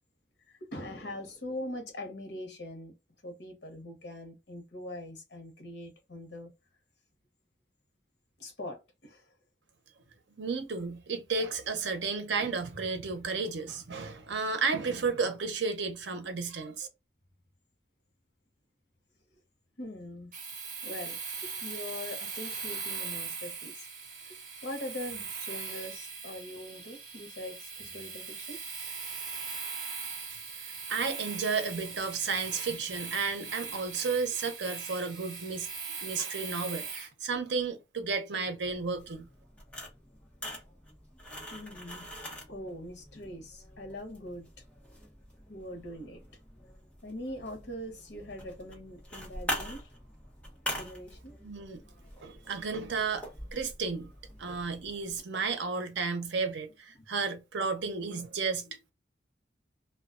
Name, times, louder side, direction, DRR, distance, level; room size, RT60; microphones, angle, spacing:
voice 1, 0.5-2.9 3.2-6.5 8.4-9.3 19.8-20.3 20.8-23.9 24.3-28.6 41.5-42.1 42.5-44.5 45.5-46.2 47.0-49.9 50.8-51.3 56.9-57.0, left 1 dB, 70° left, 0.9 m, -42 dB
voice 2, 10.4-16.9 30.9-35.7 36.0-39.3 51.4-51.8 52.2-53.2 53.5-54.1 54.4-58.9, right 4 dB, 80° right, 0.6 m, -33 dB
Domestic sounds home sounds, 20.3-37.1, right 5 dB, 45° right, 0.8 m, -40 dB
sound 1, 38.6-55.2, equal, 5° left, 0.8 m, -44 dB
2.3 x 2.2 x 2.3 m
head